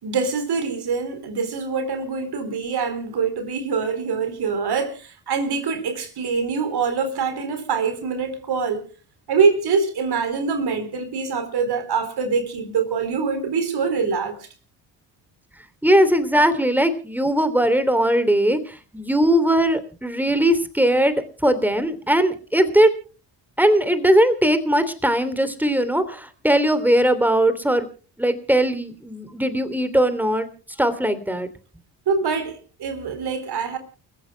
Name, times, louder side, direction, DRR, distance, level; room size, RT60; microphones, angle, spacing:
voice 1, 0.0-8.8 9.3-14.4 32.1-33.8, right 5 dB, 50° right, 4.1 m, -24 dB
voice 2, 15.8-22.9 23.6-27.9 28.2-30.5 30.8-31.5, right 1 dB, 5° right, 3.1 m, -19 dB
29.0 x 15.0 x 2.3 m
hypercardioid pair, 50°, 49 cm